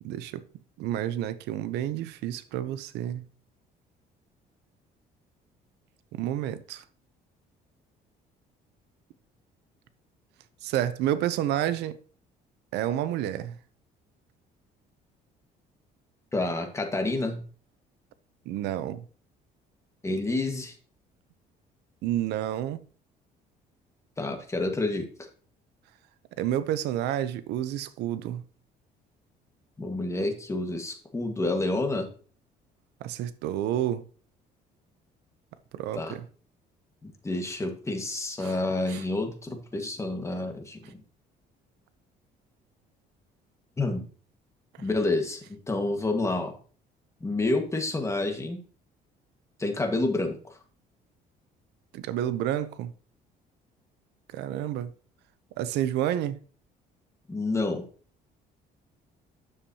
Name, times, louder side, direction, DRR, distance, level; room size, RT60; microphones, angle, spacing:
voice 1, 0.0-0.4 0.8-3.2 6.1-6.8 10.6-12.0 12.7-13.6 18.5-19.0 22.0-22.8 26.4-28.4 33.0-34.0 35.7-36.3 38.4-38.5 38.9-39.0 40.8-40.9 51.9-52.9 54.3-54.9 55.6-56.4, right 12 dB, 85° right, 0.6 m, -29 dB
voice 2, 16.3-17.4 20.0-20.7 24.2-25.1 29.8-32.1 35.9-36.2 37.0-40.9 43.8-44.0 44.8-46.5 47.2-48.6 49.6-50.6 57.3-57.8, left 2 dB, 15° left, 1.6 m, -29 dB
9.8 x 7.2 x 2.8 m
cardioid pair, 110°, 17 cm